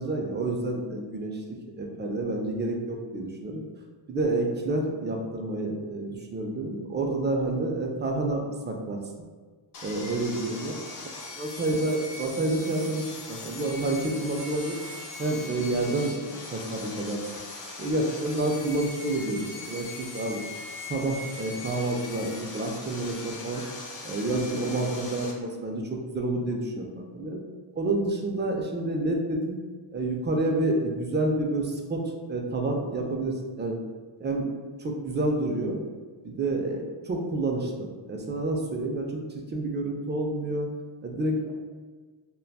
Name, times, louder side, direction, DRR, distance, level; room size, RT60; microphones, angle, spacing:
voice 1, 0.0-3.6 4.1-9.0 9.8-10.8 11.3-14.8 15.2-17.3 17.8-20.4 20.9-23.6 24.0-27.4 27.7-29.6 29.9-33.8 34.2-34.5 34.8-35.8 36.2-40.7 41.0-41.5, right 2 dB, 25° right, 1 dB, 0.3 m, -29 dB
Sawing, 9.7-25.3, left 3 dB, 40° left, 0.5 m, -40 dB
2.6 x 2.2 x 2.3 m, 1.4 s
cardioid pair, 65°, 50 cm